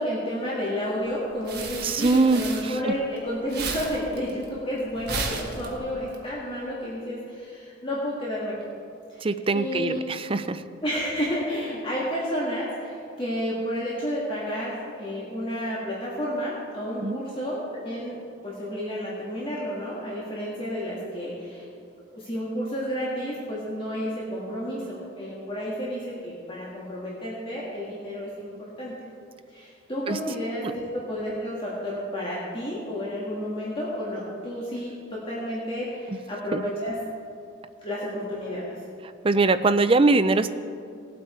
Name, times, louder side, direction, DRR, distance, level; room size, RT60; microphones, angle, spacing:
voice 1, 0.0-8.6 9.1-9.3 9.5-10.0 10.8-21.7 22.1-28.5 28.8-29.0 29.5-37.0 37.8-38.7, equal, 25° left, -6 dB, 1.9 m, -31 dB
sound 1, 1.1-3.2 3.4-6.1, right 4 dB, 55° right, 1.6 m, -34 dB
voice 2, 1.8-2.9 9.2-10.6 17.0-17.2 30.1-30.2 30.6-30.7 36.1-36.2 36.5-36.6 39.2-40.5, right 3 dB, 25° right, 11 dB, 0.4 m, -22 dB
19.0 x 8.3 x 4.4 m, 2.4 s
head